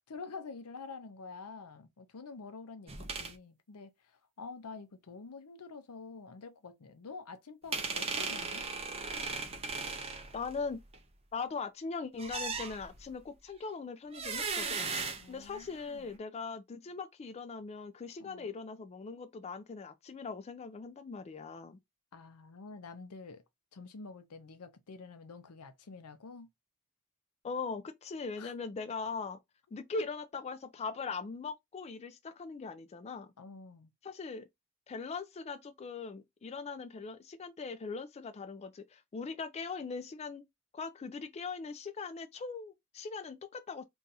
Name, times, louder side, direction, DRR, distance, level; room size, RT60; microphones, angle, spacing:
voice 1, 0.0-8.6 15.2-16.1 18.2-18.5 22.1-23.4 23.7-26.5 28.4-28.5 29.9-30.0 33.4-33.9, left 4 dB, 85° left, 0.6 m, -48 dB
sound 1, 2.9-3.3 7.7-11.0 12.2-13.1 14.1-15.9, right 4 dB, 25° right, 0.5 m, -37 dB
voice 2, 10.3-10.8 11.3-14.8 15.3-21.8 27.4-29.4 29.7-33.3 34.0-34.4 34.9-40.5 40.7-43.8, left 4 dB, 30° left, 0.3 m, -40 dB
2.6 x 2.4 x 4.0 m
head